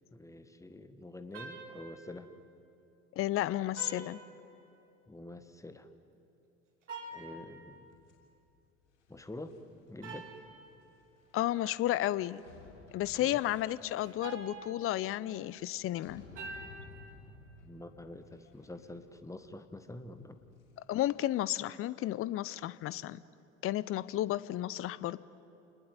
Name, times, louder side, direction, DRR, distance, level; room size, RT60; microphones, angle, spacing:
voice 1, 0.0-2.3 5.1-5.9 7.1-7.9 9.1-9.6 9.9-10.3 13.1-13.4 17.6-20.4, left 2 dB, 10° left, 10 dB, 1.7 m, -47 dB
sound 1, 1.3-2.1 3.8-4.9 6.8-7.8 10.0-10.6 14.0-15.3 16.4-17.1, right 3 dB, 75° right, 3.0 m, -47 dB
voice 2, 3.2-4.2 11.3-12.4 12.9-16.2 20.9-23.2 23.6-25.2, left 14 dB, 40° left, 19 dB, 0.8 m, -32 dB
sound 2, 7.9-21.1, left 4 dB, 70° left, 6.5 m, -58 dB
28.5 x 20.5 x 9.3 m, 2.7 s
figure-of-eight pair, 65°, 36 cm